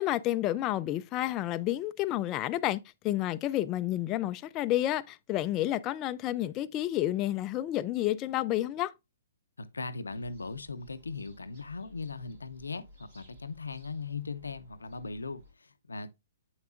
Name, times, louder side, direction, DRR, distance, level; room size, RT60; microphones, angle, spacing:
voice 1, 0.0-2.8 3.0-8.9, left 14 dB, 30° left, 0.3 m, -30 dB
voice 2, 9.6-16.1, left 4 dB, 90° left, 0.5 m, -39 dB
sound 1, 10.1-15.5, equal, 65° right, 4.4 m, -57 dB
7.8 x 5.5 x 2.4 m
hypercardioid pair, 130°, 0 cm